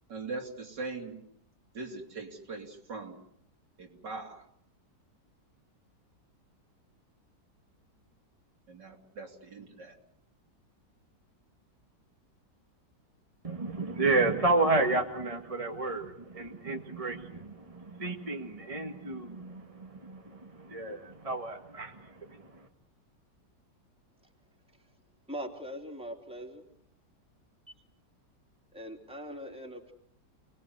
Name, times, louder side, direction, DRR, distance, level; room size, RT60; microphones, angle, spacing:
voice 1, 0.1-1.2 1.7-3.2 3.8-4.5 8.7-10.0, right 3 dB, 70° right, 2 dB, 3.7 m, -41 dB
voice 2, 13.4-22.7, right 2 dB, 20° right, 3 dB, 1.6 m, -31 dB
voice 3, 25.3-26.7 28.7-29.9, equal, 5° right, 1 dB, 3.2 m, -41 dB
29.5 x 20.5 x 8.1 m, 0.69 s
omnidirectional pair, 1.9 m